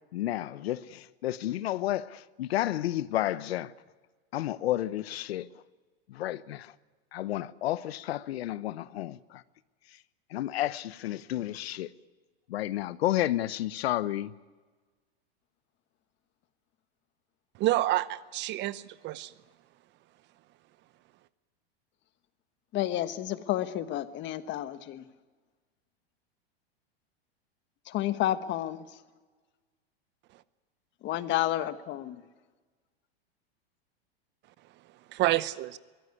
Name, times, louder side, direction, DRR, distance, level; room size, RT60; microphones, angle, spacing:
voice 1, 0.1-3.7 4.3-5.5 6.1-6.7 7.1-9.4 10.3-11.9 12.5-14.3, left 14 dB, 75° left, 0.8 m, -31 dB
voice 2, 17.6-19.3 35.1-35.8, right 16 dB, 35° right, 0.8 m, -28 dB
voice 3, 22.7-25.0 27.9-28.8 31.0-32.2, left 13 dB, 35° left, 1.3 m, -30 dB
23.0 x 16.5 x 9.7 m
hypercardioid pair, 120°, 31 cm